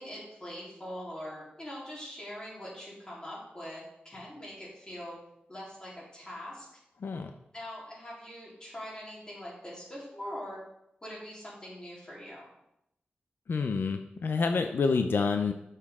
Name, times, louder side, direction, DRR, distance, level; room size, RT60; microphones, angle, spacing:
voice 1, 0.0-5.1 5.5-6.7 7.5-10.6 11.0-12.5, equal, 25° left, -6 dB, 3.5 m, -42 dB
voice 2, 13.5-15.5, left 4 dB, 80° left, 6 dB, 0.5 m, -28 dB
8.6 x 6.8 x 3.6 m, 0.82 s
wide cardioid pair, 120°, 4 cm